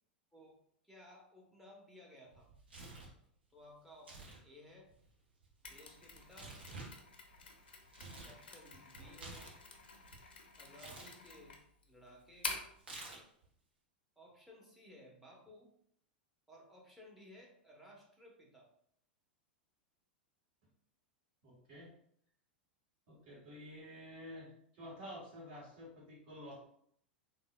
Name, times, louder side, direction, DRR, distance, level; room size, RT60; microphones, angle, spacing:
voice 1, 0.8-2.5 3.5-4.9 5.7-6.6 8.2-9.5 10.6-11.6 11.9-12.6 14.2-15.7 16.5-18.7, equal, 5° right, -2 dB, 0.8 m, -58 dB
Tearing, 2.3-3.2 3.9-4.4 4.7-8.4 8.7-10.2 10.7-11.1 12.8-13.5, right 3 dB, 75° right, 0.6 m, -51 dB
Mechanisms, 5.6-12.8, left 4 dB, 75° left, 0.5 m, -48 dB
voice 2, 21.4-21.9 23.1-26.6, equal, 50° right, -6 dB, 1.3 m, -50 dB
3.5 x 2.2 x 2.2 m, 0.68 s
figure-of-eight pair, 95°, 5 cm